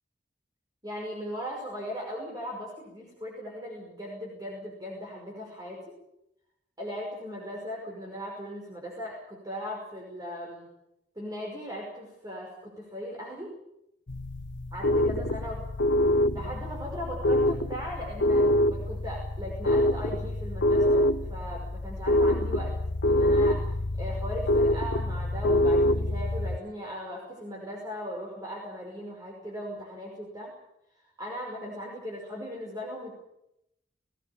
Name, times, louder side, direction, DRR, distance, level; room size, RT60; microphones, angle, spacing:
voice 1, 0.8-6.0 6.8-10.7 11.2-13.5 14.7-15.6 16.3-22.7 23.0-30.5 31.0-33.2, equal, 20° right, -2 dB, 5.6 m, -38 dB
sound 1, 14.1-26.6, left 1 dB, 80° left, 1.0 m, -25 dB
21.0 x 17.5 x 8.8 m, 0.82 s
head